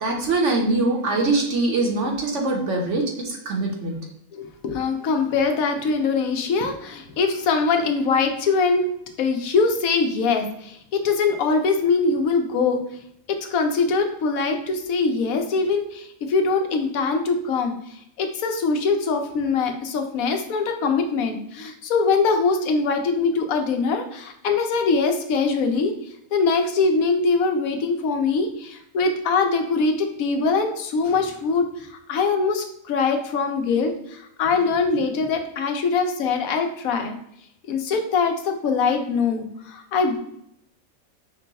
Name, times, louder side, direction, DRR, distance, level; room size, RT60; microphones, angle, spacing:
voice 1, 0.0-4.0, right 2 dB, 60° right, 0 dB, 1.3 m, -23 dB
voice 2, 4.3-8.9 9.2-12.8 13.3-17.7 18.2-25.9 26.3-37.1 37.7-40.2, left 4 dB, 85° left, 5 dB, 1.1 m, -22 dB
5.4 x 2.3 x 3.9 m, 0.74 s
omnidirectional pair, 1.4 m